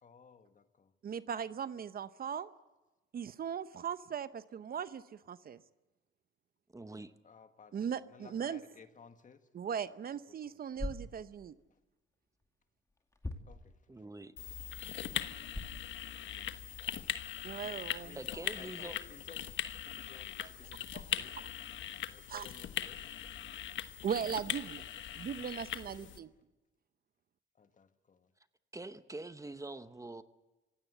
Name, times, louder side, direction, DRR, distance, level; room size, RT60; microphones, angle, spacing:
voice 1, 0.0-0.9 7.2-9.5 9.9-10.0 10.3-10.6 11.7-11.8 13.5-14.2 14.6-15.0 16.3-17.0 17.6-19.5 19.8-21.4 22.1-23.0 24.7-24.8 25.8-26.3 27.5-28.3, left 6 dB, 40° left, 8 dB, 1.7 m, -58 dB
voice 2, 1.0-2.5 3.1-5.6 7.7-8.6 9.5-11.5 17.4-18.2 20.9-21.0 22.3-22.5 24.0-24.8 25.1-26.3, right 7 dB, 50° right, 14 dB, 0.7 m, -38 dB
voice 3, 6.7-7.1 13.9-14.3 15.8-16.0 18.1-19.0 23.5-23.7 28.7-30.2, right 2 dB, 15° right, 11 dB, 1.0 m, -45 dB
sound 1, 10.7-11.8 12.4-13.9 14.4-16.0 16.4-16.5 17.1-17.2 17.9-24.1, left 2 dB, 15° left, 2.4 m, -47 dB
sound 2, 14.4-26.2, left 10 dB, 70° left, 1.2 m, -40 dB
25.5 x 16.5 x 8.1 m, 1.1 s
cardioid pair, 90°, 20 cm